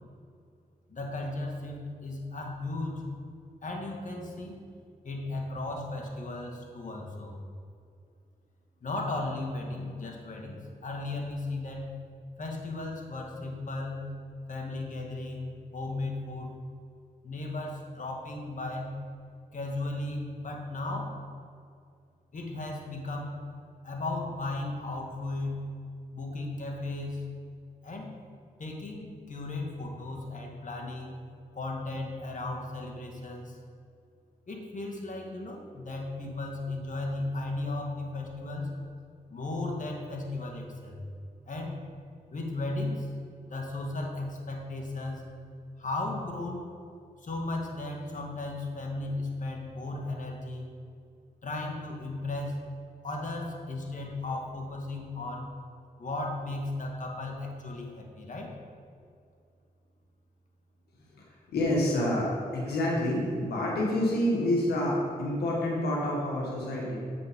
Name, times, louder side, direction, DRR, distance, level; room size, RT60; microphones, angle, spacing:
voice 1, 0.9-3.0 3.6-4.6 5.0-7.4 8.8-11.9 12.4-14.1 14.5-16.6 17.2-18.9 19.5-21.1 22.3-23.4 23.8-25.6 26.1-27.3 27.8-28.1 28.6-31.2 31.5-33.6 34.5-38.7 39.3-41.0 41.5-41.8 42.3-43.1 43.5-45.2 45.8-46.7 47.2-50.7 51.4-52.6 53.0-55.5 56.0-58.6, left 2 dB, 50° left, 1 dB, 1.9 m, -35 dB
voice 2, 61.1-67.0, left 1 dB, 90° left, -3 dB, 1.5 m, -28 dB
8.0 x 6.0 x 5.2 m, 2.3 s
cardioid pair, 60°, 16 cm